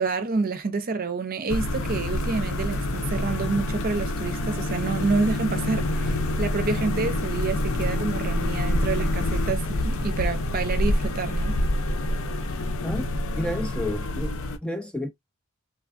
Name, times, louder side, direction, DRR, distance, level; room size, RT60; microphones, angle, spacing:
voice 1, 0.0-11.5, right 4 dB, 45° right, 0.6 m, -28 dB
sound 1, 1.5-14.6, left 1 dB, 70° left, 0.5 m, -27 dB
voice 2, 13.4-14.3 14.6-15.1, left 1 dB, 5° left, 0.3 m, -30 dB
3.3 x 2.2 x 2.4 m
head